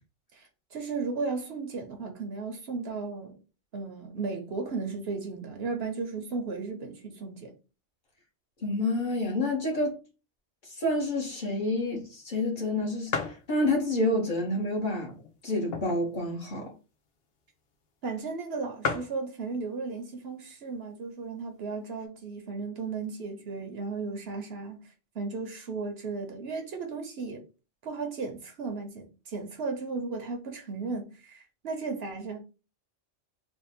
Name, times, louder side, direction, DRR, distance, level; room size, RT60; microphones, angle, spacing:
voice 1, 0.3-3.4 3.7-7.6 18.0-27.4 27.8-32.4, right 4 dB, 65° right, 0.9 m, -35 dB
voice 2, 8.6-10.0 10.7-13.1 13.5-15.2 15.4-16.7, left 1 dB, 45° left, 1.1 m, -28 dB
sound 1, 12.1-12.2 12.6-12.7 13.1-13.5 14.1-14.2 15.0-16.2 16.5-16.6 16.8-17.1 17.8-17.9 18.2-18.3 18.5-18.6 18.8-19.2 20.1-20.4 21.0-21.1 21.3-22.1, left 4 dB, 60° left, 0.8 m, -34 dB
3.5 x 2.1 x 4.1 m
omnidirectional pair, 1.2 m